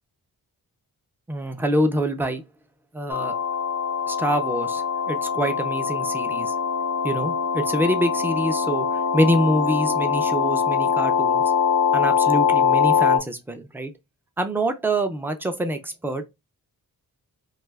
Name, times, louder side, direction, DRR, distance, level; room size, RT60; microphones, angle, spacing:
voice 1, 1.3-2.4 2.9-3.4 4.1-6.5 7.0-8.9 9.1-11.4 11.9-13.9 14.4-16.3, right 1 dB, 5° right, 0.3 m, -25 dB
sound 1, 3.1-13.2, left 6 dB, 50° left, 0.5 m, -23 dB
2.6 x 2.3 x 3.1 m
wide cardioid pair, 140°, 38 cm